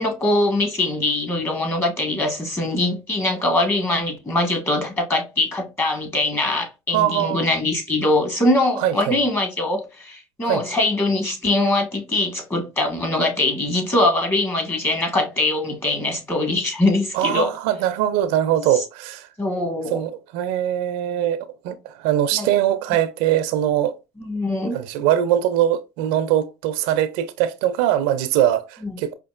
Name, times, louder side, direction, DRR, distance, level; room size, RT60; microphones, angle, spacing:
voice 1, 0.0-17.5 19.4-20.0 22.4-22.5 24.2-24.8 28.8-28.9, left 2 dB, 25° left, 1.5 m, -22 dB
voice 2, 6.9-7.5 8.8-9.2 10.4-10.6 17.1-19.3 19.9-24.0 24.7-29.1, right 11 dB, 80° right, 0.5 m, -22 dB
5.0 x 2.5 x 2.4 m
supercardioid pair, 95°, 10 cm